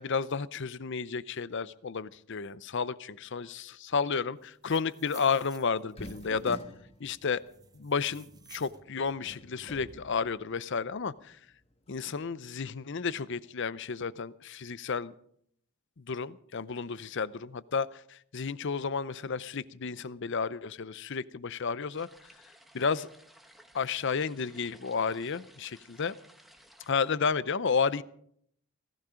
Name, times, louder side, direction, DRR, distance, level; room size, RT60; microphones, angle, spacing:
voice 1, 0.0-6.6 7.0-7.4 7.7-11.4 11.9-15.1 16.0-22.1 22.7-23.1 23.7-26.2 26.9-28.0, left 5 dB, 55° left, 17 dB, 0.6 m, -32 dB
sound 1, 4.4-6.5 7.1-8.8, right 6 dB, 15° right, 0.9 m, -55 dB
sound 2, 5.9-10.8 11.2-11.3 11.9-12.2, left 1 dB, 25° left, 1.4 m, -49 dB
sound 3, 21.9-26.9, equal, ahead, 1.4 m, -58 dB
17.5 x 16.0 x 5.1 m, 0.67 s
head